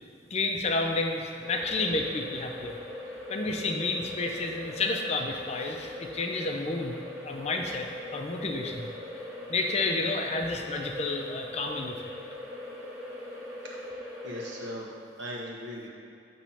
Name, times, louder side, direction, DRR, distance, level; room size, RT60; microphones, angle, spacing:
voice 1, 0.3-2.8 3.3-7.0 7.2-7.9 8.1-8.9 9.5-12.0, left 3 dB, 35° left, 3 dB, 0.5 m, -30 dB
sound 1, 1.4-14.7, left 1 dB, 10° right, 0.9 m, -41 dB
voice 2, 13.6-15.9, equal, 75° right, -3 dB, 1.2 m, -40 dB
7.3 x 3.0 x 5.6 m, 2.6 s
head